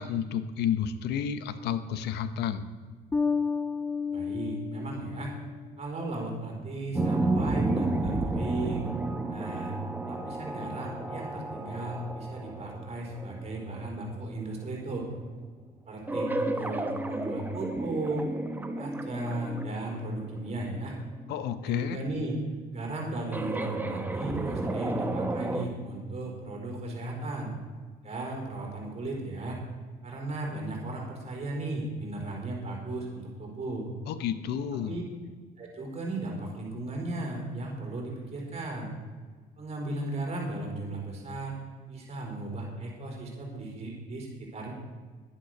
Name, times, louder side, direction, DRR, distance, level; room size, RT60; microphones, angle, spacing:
voice 1, 0.0-2.7 21.3-22.0 34.1-35.0, left 8 dB, 75° left, 12 dB, 0.9 m, -31 dB
Bass guitar, 3.1-5.8, left 5 dB, 15° left, 0.3 m, -31 dB
voice 2, 4.1-5.3 5.8-8.9 9.3-9.7 10.1-15.1 15.9-18.3 18.8-20.9 21.6-22.4 22.7-27.5 28.0-29.6 30.0-33.9 34.9-35.0 35.6-38.9 39.6-41.5 41.9-44.7, right 2 dB, 40° right, 0 dB, 4.4 m, -36 dB
sound 1, 6.9-14.4 16.1-21.6 23.3-25.7, right 2 dB, 10° right, 1.1 m, -32 dB
11.0 x 10.0 x 6.6 m, 1.5 s
cardioid pair, 110°, 17 cm